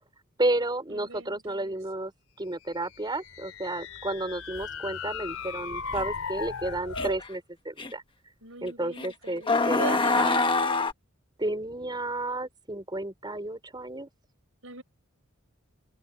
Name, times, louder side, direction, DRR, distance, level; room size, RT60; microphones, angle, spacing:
voice 1, 0.4-2.1 2.4-8.0 8.6-10.3 11.4-14.1, right 1 dB, 20° right, 5.0 m, -32 dB
voice 2, 0.9-1.7 8.4-9.5 9.8-10.4 14.6-14.8, right 3 dB, 70° right, 5.4 m, -39 dB
sound 1, 2.8-7.2, left 5 dB, 85° left, 3.6 m, -37 dB
sound 2, 6.0-6.1 7.0-7.3 7.8-7.9 9.0-9.1 9.5-10.9, left 3 dB, 25° left, 1.2 m, -24 dB
open air
head